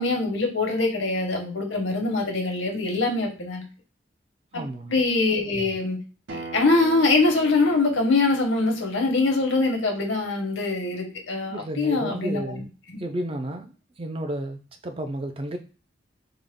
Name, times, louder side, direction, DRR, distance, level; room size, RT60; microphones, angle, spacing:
voice 1, 0.0-3.7 4.5-6.0 6.5-12.6, left 3 dB, 80° left, 1.0 m, -23 dB
voice 2, 4.5-4.9 11.5-12.7 13.0-15.6, right 1 dB, 30° right, 0.4 m, -32 dB
Acoustic guitar, 6.3-11.5, right 3 dB, 75° right, 0.8 m, -42 dB
3.7 x 2.1 x 3.5 m
head